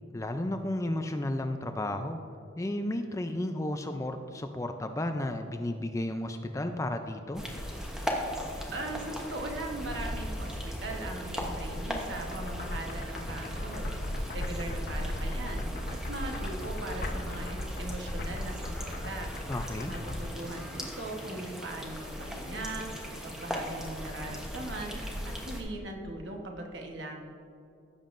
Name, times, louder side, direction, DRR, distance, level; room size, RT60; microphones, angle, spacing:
voice 1, 0.1-2.2 2.6-7.4 19.5-19.9, left 1 dB, 15° left, 7 dB, 0.3 m, -33 dB
sound 1, 7.3-25.6, equal, 5° right, 0.9 m, -39 dB
voice 2, 8.7-13.9 14.3-15.7 16.1-19.3 19.9-22.9 23.2-27.1, right 2 dB, 60° right, 2 dB, 1.1 m, -39 dB
sound 2, 12.1-20.3, left 1 dB, 45° left, 0.7 m, -36 dB
16.0 x 7.2 x 2.5 m, 2.6 s
head